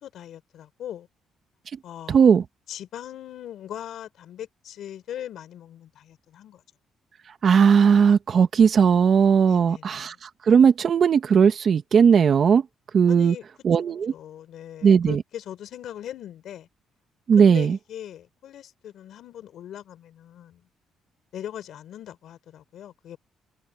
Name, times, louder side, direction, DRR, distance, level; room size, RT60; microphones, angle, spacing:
voice 1, 0.0-1.1 1.8-2.3 2.7-6.6 9.4-10.2 13.1-13.4 14.1-16.7 17.4-20.6 21.3-23.2, left 11 dB, 70° left, 4.2 m, -40 dB
voice 2, 2.1-2.4 7.4-12.6 12.9-13.3 13.6-14.1 14.8-15.2 17.3-17.8, right 6 dB, 50° right, 1.7 m, -18 dB
cardioid pair, 105°, 0 cm